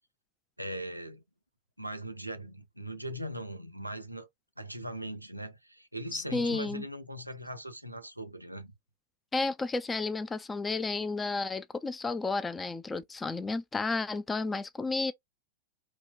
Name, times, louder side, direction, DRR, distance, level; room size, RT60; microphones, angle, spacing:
voice 1, 0.6-1.2 1.8-4.3 4.6-8.7, equal, 90° right, 0.5 m, -40 dB
voice 2, 6.1-6.8 9.3-15.1, left 3 dB, 15° left, 0.3 m, -32 dB
4.0 x 2.1 x 2.3 m
figure-of-eight pair, 90°, 0 cm